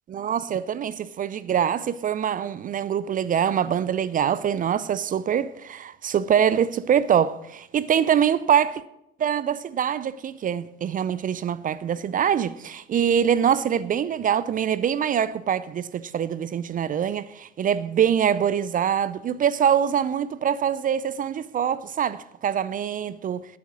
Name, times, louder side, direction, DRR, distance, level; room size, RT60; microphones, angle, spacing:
voice 1, 0.1-8.8 9.2-23.5, right 8 dB, 30° right, 0.5 m, -24 dB
11.0 x 9.2 x 6.2 m
figure-of-eight pair, 70°, 30 cm